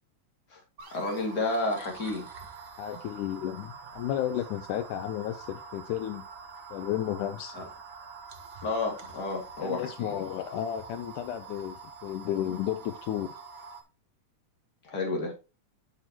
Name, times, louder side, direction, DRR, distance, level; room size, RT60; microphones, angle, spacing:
sound 1, 0.8-13.8, right 5 dB, 60° right, 1.0 m, -46 dB
voice 1, 0.9-2.3 7.5-7.6 8.6-10.1 14.8-15.3, left 2 dB, 30° left, 2.9 m, -31 dB
voice 2, 2.8-6.2 6.7-7.6 9.6-13.3, left 11 dB, 80° left, 2.1 m, -33 dB
11.0 x 5.8 x 2.9 m
omnidirectional pair, 3.6 m